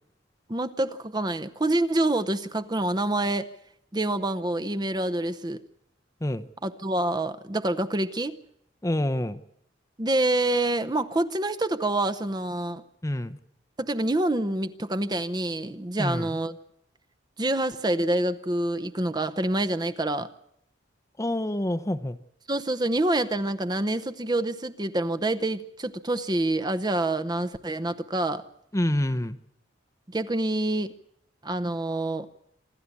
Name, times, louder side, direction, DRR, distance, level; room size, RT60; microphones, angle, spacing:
voice 1, 0.5-3.5 3.9-5.6 6.6-8.4 10.0-12.8 13.8-16.6 17.4-20.3 22.5-28.5 30.1-30.9 31.4-32.3, right 1 dB, 20° right, 12 dB, 0.8 m, -27 dB
voice 2, 8.8-9.4 13.0-13.4 16.0-16.3 21.2-22.2 28.7-29.4, left 1 dB, 15° left, 12 dB, 0.7 m, -27 dB
27.0 x 12.0 x 8.3 m, 0.75 s
head